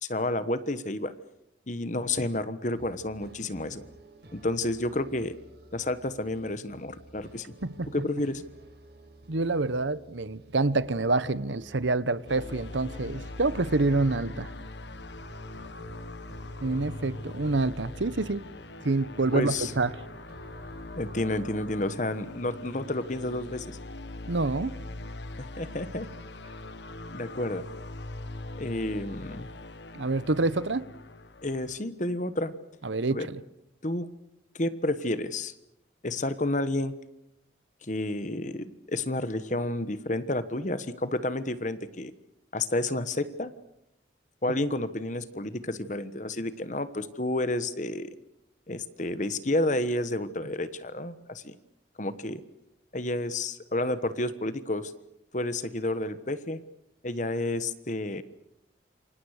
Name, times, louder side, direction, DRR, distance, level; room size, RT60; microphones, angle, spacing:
voice 1, 0.0-1.1 1.7-3.8 4.3-5.3 5.7-7.5 7.9-8.4 19.3-19.7 21.0-23.8 25.4-26.1 27.1-27.7 28.6-29.5 31.4-32.5 33.1-33.3 33.8-34.1 34.5-35.5 36.0-36.9 37.8-42.1 42.5-43.5 44.4-48.1 48.7-51.6 52.0-52.4 52.9-54.9 55.3-56.6 57.0-58.2, left 1 dB, 40° left, 1.3 m, -30 dB
sound 1, 2.7-21.3, right 1 dB, 60° right, 4.9 m, -52 dB
voice 2, 7.6-7.9 9.3-14.5 16.6-18.4 18.8-19.9 24.3-24.8 29.9-30.9 32.8-33.4, right 3 dB, 80° right, 1.0 m, -27 dB
sound 2, 12.3-31.8, left 2 dB, 70° left, 1.4 m, -41 dB
28.5 x 25.0 x 6.6 m
head